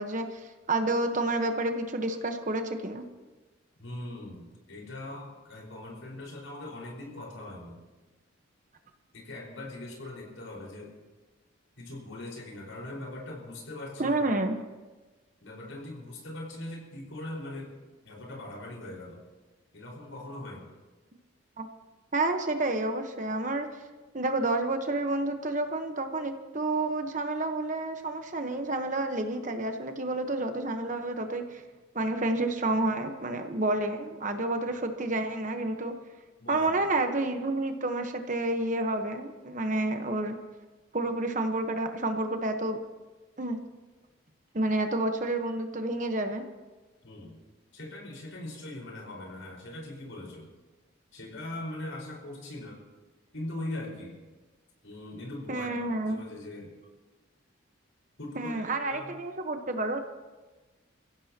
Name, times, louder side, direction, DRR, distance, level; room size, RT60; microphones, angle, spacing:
voice 1, 0.0-3.0 14.0-14.6 21.6-21.7 22.1-23.7 24.1-31.6 31.9-35.9 36.5-40.4 40.9-42.8 43.4-43.6 44.5-46.4 55.5-56.2 58.3-60.0, right 2 dB, 40° right, 6 dB, 1.1 m, -29 dB
voice 2, 3.8-7.8 9.1-11.0 11.8-14.3 15.4-17.7 18.0-19.2 19.7-20.7 36.4-36.7 47.0-47.4 47.7-50.5 51.1-52.8 53.3-54.2 54.8-55.8 56.0-56.7 58.2-59.1, left 1 dB, 75° left, -1 dB, 4.9 m, -41 dB
28.5 x 16.0 x 2.9 m, 1.2 s
head